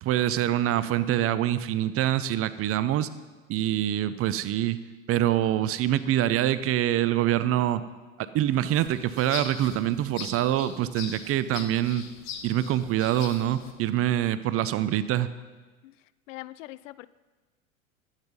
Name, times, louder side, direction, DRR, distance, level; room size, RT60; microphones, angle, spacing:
voice 1, 0.0-3.1 3.5-4.8 5.1-7.8 8.2-12.0 12.4-15.3, right 12 dB, 35° right, 15 dB, 0.6 m, -25 dB
sound 1, 8.7-13.7, left 7 dB, 40° left, 1.5 m, -41 dB
voice 2, 16.3-17.1, left 17 dB, 65° left, 18 dB, 0.5 m, -42 dB
12.0 x 8.9 x 5.4 m, 1.3 s
hypercardioid pair, 90°, 42 cm